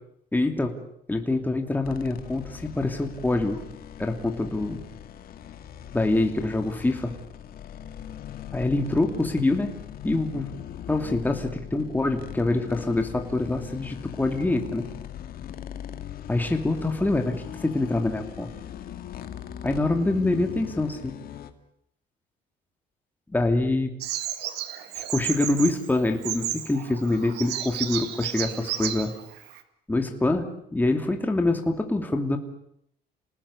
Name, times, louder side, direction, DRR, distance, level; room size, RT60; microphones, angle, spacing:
voice 1, 0.3-0.8 1.1-3.6 4.0-4.8 5.9-7.1 8.5-9.7 10.0-10.5 10.9-14.9 16.3-18.5 19.6-21.1 23.3-23.9 24.9-29.1 29.9-32.4, left 2 dB, 10° left, 4 dB, 2.7 m, -25 dB
sound 1, 1.8-21.5, left 10 dB, 60° left, 2.3 m, -40 dB
Bird vocalization bird call bird song, 24.0-29.6, right 12 dB, 80° right, 2.1 m, -33 dB
28.0 x 19.0 x 8.4 m, 0.74 s
cardioid pair, 110°, 17 cm